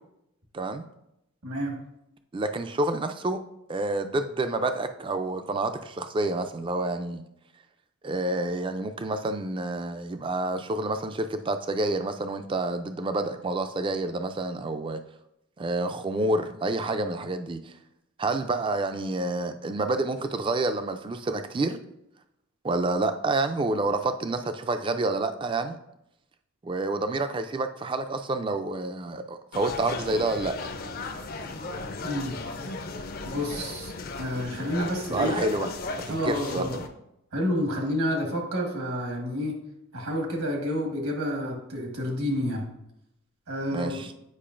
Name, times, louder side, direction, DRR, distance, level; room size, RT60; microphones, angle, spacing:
voice 1, 1.4-1.8 32.0-32.4 33.2-33.9 34.2-35.3 36.1-36.7 37.3-39.6 39.9-42.7 43.5-44.1, equal, 80° right, 1 dB, 1.5 m, -29 dB
voice 2, 2.3-3.4 3.7-7.2 8.0-15.0 15.6-17.7 18.2-21.8 22.6-25.8 26.6-30.6 35.1-35.7 36.1-36.9 43.7-44.1, right 2 dB, 25° right, 9 dB, 0.3 m, -28 dB
sound 1, 29.5-36.9, left 3 dB, 40° left, 0.5 m, -36 dB
8.5 x 5.0 x 2.5 m, 0.83 s
head